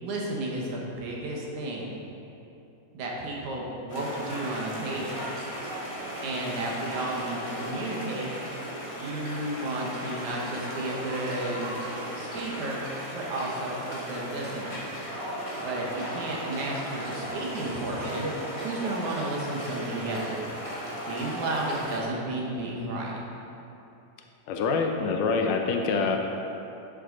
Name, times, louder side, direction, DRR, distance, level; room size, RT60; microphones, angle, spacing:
voice 1, 0.0-2.0 2.9-5.5 6.2-8.3 9.0-11.7 12.1-12.8 13.1-14.9 15.6-18.3 18.6-20.5 21.1-23.2, right 2 dB, 70° right, -2 dB, 2.4 m, -33 dB
sound 1, 3.9-22.0, equal, 15° left, 1.1 m, -36 dB
voice 2, 24.5-26.2, left 4 dB, 80° left, 3 dB, 2.1 m, -25 dB
11.5 x 7.9 x 3.9 m, 2.8 s
omnidirectional pair, 3.9 m